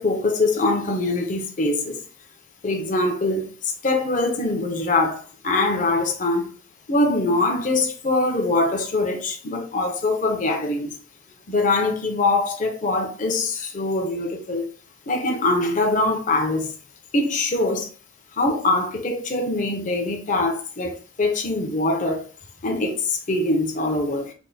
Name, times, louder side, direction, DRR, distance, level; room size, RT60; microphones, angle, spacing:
voice 1, 0.0-2.0 2.6-6.5 6.9-10.9 11.5-14.7 15.1-16.7 17.1-17.9 18.4-22.3 22.6-24.3, left 2 dB, 40° left, 0.6 m, -23 dB
3.4 x 2.2 x 4.0 m
head